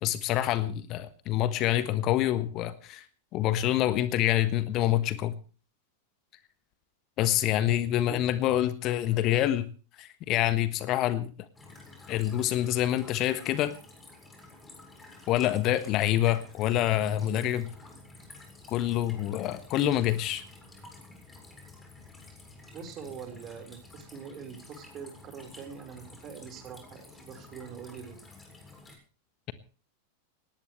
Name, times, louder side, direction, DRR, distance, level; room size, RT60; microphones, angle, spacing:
voice 1, 0.0-3.0 3.3-5.3 7.2-9.7 10.0-11.3 12.1-13.7 15.3-17.7 18.7-20.4, left 13 dB, 35° left, 12 dB, 1.3 m, -26 dB
sound 1, 11.5-29.0, left 2 dB, 10° left, 7.2 m, -51 dB
voice 2, 22.7-28.2, right 6 dB, 30° right, 5 dB, 4.7 m, -43 dB
19.5 x 18.5 x 3.3 m, 0.38 s
figure-of-eight pair, 90°, 0 cm